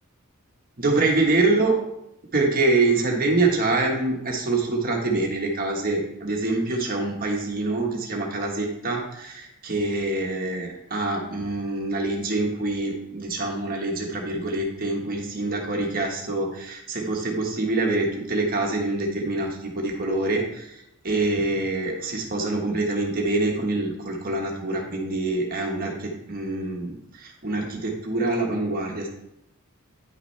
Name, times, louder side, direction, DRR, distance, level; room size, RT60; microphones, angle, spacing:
voice 1, 0.8-1.8 2.3-29.1, right 2 dB, 40° right, 0 dB, 1.4 m, -25 dB
10.0 x 5.9 x 3.3 m, 0.81 s
head